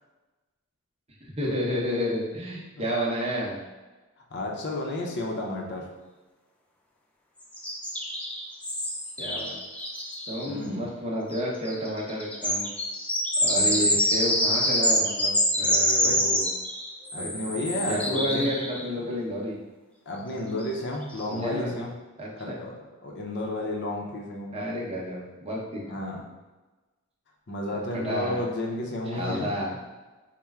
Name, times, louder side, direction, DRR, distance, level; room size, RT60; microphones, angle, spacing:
voice 1, 1.2-3.6 9.2-9.6 10.3-12.7 13.4-16.5 17.2-19.6 21.3-21.8 22.2-22.6 24.5-25.8 27.9-28.4 29.1-29.8, equal, 25° right, -3 dB, 0.7 m, -31 dB
voice 2, 4.3-5.9 10.5-10.9 13.5-13.9 16.0-16.3 17.1-18.5 19.0-19.1 20.1-22.0 22.4-22.7 23.0-24.6 25.9-26.2 27.5-29.5, left 1 dB, 50° left, 0 dB, 0.6 m, -32 dB
sound 1, 7.5-10.4 11.3-11.4 11.6-18.8 20.6-20.7 21.1-21.3, equal, 5° left, 0.3 m, -26 dB
4.3 x 2.1 x 3.5 m, 1.2 s
head